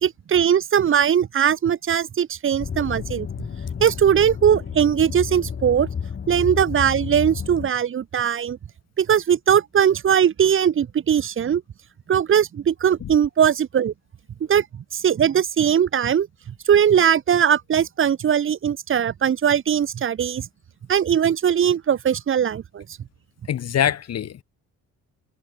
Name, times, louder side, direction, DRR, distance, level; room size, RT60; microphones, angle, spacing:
voice 1, 0.0-3.3 3.8-5.9 6.3-8.6 9.0-11.6 12.1-13.9 14.5-14.6 14.9-16.3 16.7-20.5 20.9-22.8, right 8 dB, 45° right, 0.9 m, -20 dB
sound 1, 2.6-7.7, left 7 dB, 40° left, 1.7 m, -31 dB
voice 2, 23.5-24.4, left 10 dB, 55° left, 1.5 m, -24 dB
cardioid pair, 90°, 30 cm